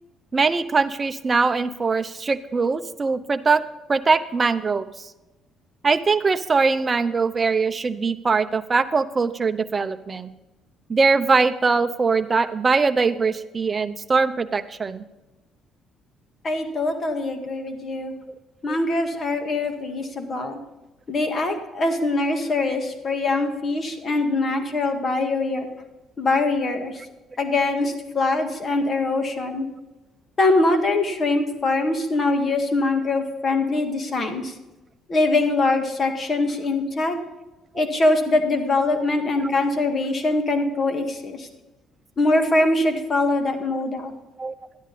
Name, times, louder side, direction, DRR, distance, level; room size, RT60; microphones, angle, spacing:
voice 1, 0.3-3.6 3.9-4.9 5.8-10.3 10.9-15.0 18.7-18.8 39.4-39.5 44.4-44.5, right 4 dB, 30° right, 9 dB, 0.7 m, -21 dB
voice 2, 16.4-18.1 18.6-20.6 21.1-25.7 26.2-26.9 27.4-29.7 30.4-34.5 35.1-37.2 37.8-41.5 42.2-44.1, left 2 dB, 40° left, 5 dB, 1.9 m, -23 dB
12.0 x 10.0 x 4.2 m, 1.1 s
cardioid pair, 100°, 0 cm